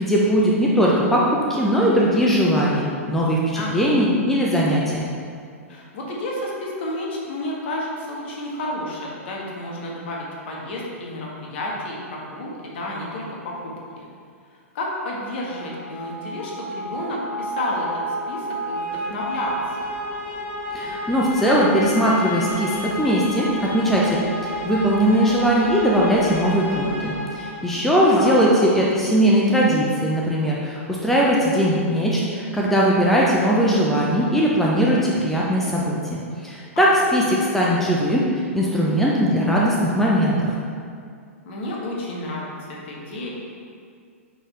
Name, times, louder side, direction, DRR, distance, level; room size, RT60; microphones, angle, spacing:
voice 1, 0.0-5.0 20.7-38.3 38.5-40.5, equal, 5° left, -5 dB, 0.7 m, -20 dB
voice 2, 3.5-4.0 5.7-14.1 14.7-18.0 18.3-19.8 28.1-28.9 36.7-37.5 41.4-43.3, left 1 dB, 50° left, -3 dB, 1.5 m, -31 dB
sound 1, 15.4-28.2, equal, 25° left, 1.4 m, -31 dB
9.0 x 4.1 x 3.3 m, 2.2 s
figure-of-eight pair, 105°, 8 cm